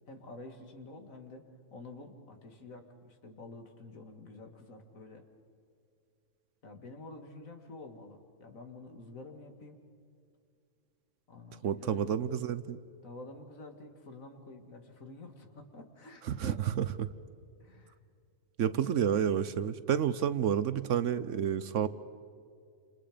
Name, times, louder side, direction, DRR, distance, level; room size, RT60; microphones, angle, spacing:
voice 1, 0.1-1.5 1.7-5.3 6.6-9.8 11.3-12.3 13.0-16.6 17.6-18.0, left 2 dB, 70° left, 5 dB, 2.5 m, -49 dB
voice 2, 11.6-12.8 16.2-17.1 18.6-21.9, right 9 dB, 65° right, 14 dB, 1.0 m, -30 dB
29.0 x 28.0 x 5.1 m, 2.3 s
omnidirectional pair, 1.5 m